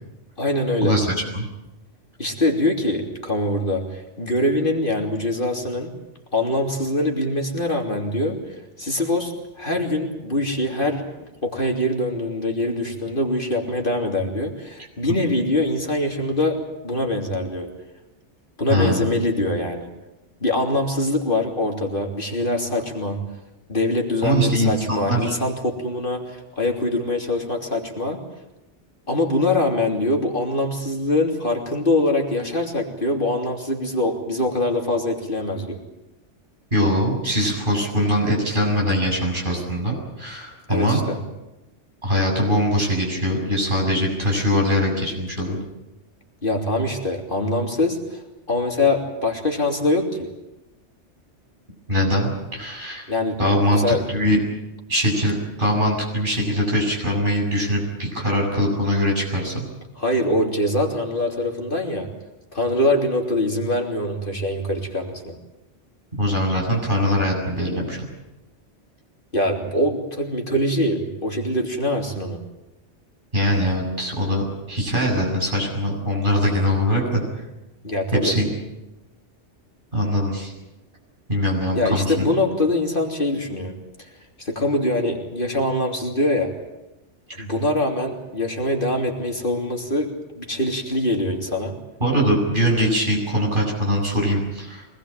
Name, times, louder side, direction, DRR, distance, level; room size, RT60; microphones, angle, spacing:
voice 1, 0.4-0.9 2.2-5.9 6.3-11.0 11.4-17.7 18.6-19.9 20.4-23.2 23.7-28.2 29.1-35.8 40.7-41.2 46.4-48.2 48.5-50.3 53.1-54.0 60.0-62.1 62.5-65.4 69.3-72.4 77.8-78.4 81.7-84.1 84.4-86.5 87.3-91.7, left 1 dB, 45° left, 1 dB, 3.4 m, -23 dB
voice 2, 18.7-19.1 24.2-25.3 36.7-41.0 42.0-45.6 51.9-53.1 53.4-53.8 54.1-54.4 54.9-59.6 66.2-68.0 73.3-77.2 78.2-78.5 79.9-80.5 81.3-82.3 92.0-94.8, equal, 45° right, -1 dB, 7.9 m, -22 dB
24.0 x 20.0 x 8.9 m, 0.96 s
omnidirectional pair, 1.2 m